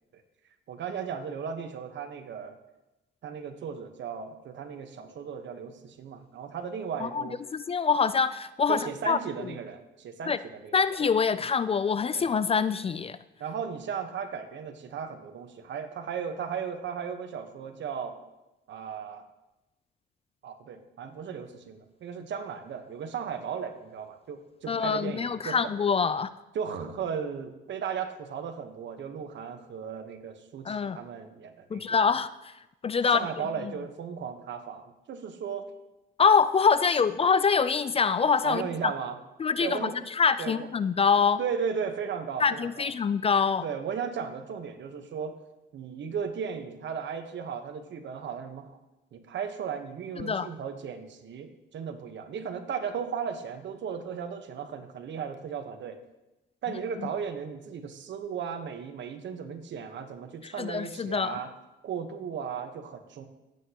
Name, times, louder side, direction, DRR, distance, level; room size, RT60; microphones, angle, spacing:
voice 1, 0.7-2.6 3.2-7.4 8.7-11.1 12.2-12.3 13.4-18.2 18.7-19.3 20.4-25.6 26.5-32.0 33.1-35.7 38.4-39.2 39.6-40.0 40.4-40.7 41.4-42.9 43.6-45.3 45.7-48.8 49.1-56.0 56.6-61.5 61.8-63.3, right 7 dB, 65° right, 7 dB, 1.2 m, -36 dB
voice 2, 7.5-9.5 10.3-10.4 10.7-13.2 24.7-26.3 30.6-31.0 31.7-32.5 32.8-33.3 33.6-33.7 36.2-38.9 39.4-41.4 42.4-43.6 50.2-50.5 60.4-61.4, left 6 dB, 30° left, 15 dB, 0.4 m, -25 dB
17.5 x 8.2 x 2.9 m, 0.98 s
cardioid pair, 90°, 20 cm